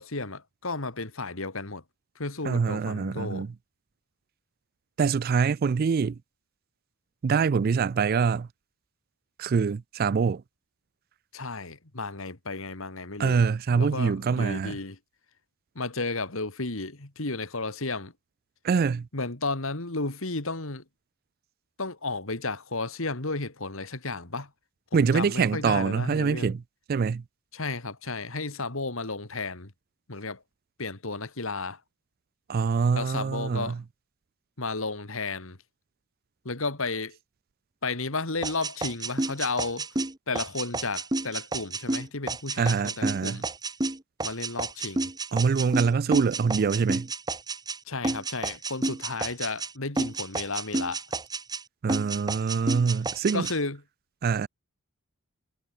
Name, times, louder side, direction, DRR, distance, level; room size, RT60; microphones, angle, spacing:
voice 1, 0.0-1.8 2.2-3.5 11.3-13.4 13.7-15.0 15.8-18.1 19.1-20.8 21.8-24.5 24.9-26.5 27.5-29.7 30.1-30.4 30.8-31.8 32.9-33.8 34.6-35.6 36.4-37.2 37.8-39.9 40.3-43.5 44.2-45.1 47.9-51.0 53.3-53.8, left 3 dB, 65° left, 2.4 m, -33 dB
voice 2, 2.4-3.5 5.0-6.2 7.2-8.5 9.4-10.4 13.2-14.8 18.6-19.1 24.9-26.6 26.9-27.2 32.5-33.8 42.6-43.4 45.3-47.1 51.8-53.5 54.2-54.5, right 5 dB, 45° right, 0.3 m, -25 dB
sound 1, 38.4-47.8 48.0-49.7 50.0-51.6 51.9-53.6, right 2 dB, 20° right, 1.2 m, -30 dB
head